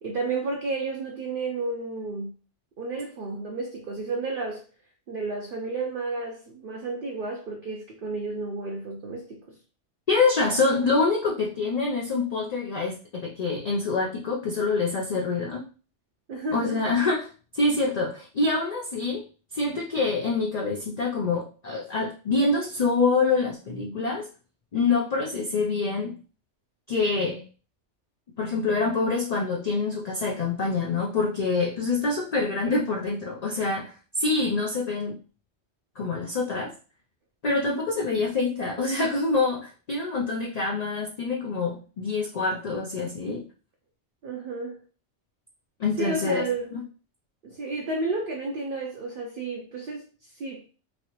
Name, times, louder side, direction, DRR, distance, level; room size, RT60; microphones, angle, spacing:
voice 1, 0.0-2.3 2.8-4.6 5.1-9.6 16.3-16.8 37.7-37.8 44.2-44.8 46.0-46.7 47.4-50.1 50.4-50.6, right 3 dB, 55° right, 0.6 m, -32 dB
voice 2, 10.1-15.6 16.5-17.3 17.5-19.2 19.5-24.3 24.7-26.1 26.9-27.4 28.4-35.2 36.0-36.7 37.4-43.4 45.8-46.4 46.7-46.8, left 3 dB, 50° left, 0.5 m, -26 dB
3.0 x 2.7 x 2.9 m
omnidirectional pair, 1.2 m